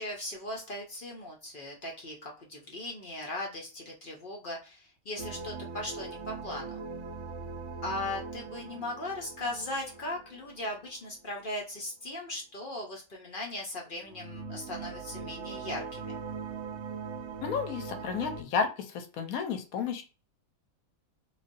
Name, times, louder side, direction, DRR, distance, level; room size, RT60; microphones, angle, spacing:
voice 1, 0.0-6.8 7.8-16.2, left 1 dB, 50° left, -1 dB, 0.7 m, -38 dB
sound 1, 5.2-11.2 14.0-18.4, right 4 dB, 65° right, 0.8 m, -41 dB
voice 2, 17.4-20.0, left 6 dB, 85° left, 7 dB, 1.1 m, -32 dB
3.2 x 2.4 x 2.5 m, 0.33 s
omnidirectional pair, 1.5 m